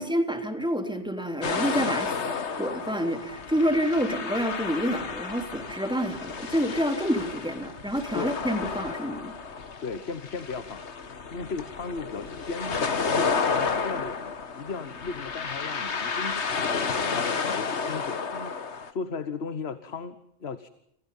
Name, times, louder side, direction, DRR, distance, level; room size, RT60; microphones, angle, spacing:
voice 1, 0.0-2.2 2.6-9.3, equal, 5° right, 6 dB, 3.3 m, -28 dB
sound 1, 1.4-18.9, left 5 dB, 90° left, 1.8 m, -31 dB
voice 2, 9.8-10.8 11.3-20.7, left 5 dB, 70° left, 12 dB, 1.5 m, -36 dB
29.0 x 27.5 x 5.6 m, 0.74 s
omnidirectional pair, 1.1 m